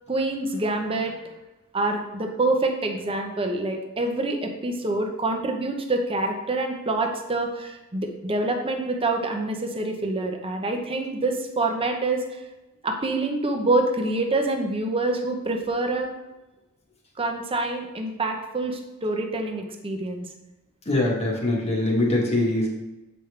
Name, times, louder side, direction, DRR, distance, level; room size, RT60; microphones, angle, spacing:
voice 1, 0.1-1.1 1.7-12.2 12.8-16.1 17.2-20.3, right 2 dB, 25° right, 3 dB, 0.8 m, -26 dB
voice 2, 20.9-22.7, left 1 dB, 30° left, -2 dB, 1.4 m, -23 dB
7.3 x 5.2 x 3.3 m, 1.0 s
head